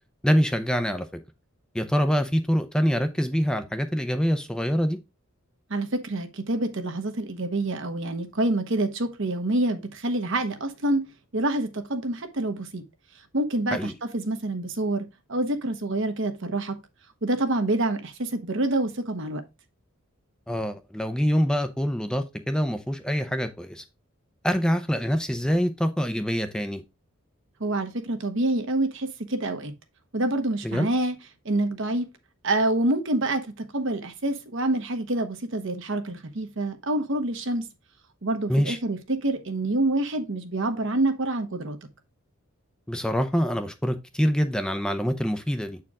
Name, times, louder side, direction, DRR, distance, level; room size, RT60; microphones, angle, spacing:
voice 1, 0.2-1.2 1.7-5.0 13.7-13.9 20.5-23.8 24.4-26.8 30.6-30.9 38.5-38.8 42.9-45.8, equal, 5° left, 0.5 m, -25 dB
voice 2, 5.7-11.0 11.3-12.8 13.3-16.7 17.2-19.4 27.6-29.7 30.1-31.1 31.4-32.0 32.4-37.6 38.2-41.8, right 2 dB, 60° right, 1.0 m, -27 dB
7.6 x 4.5 x 3.6 m
head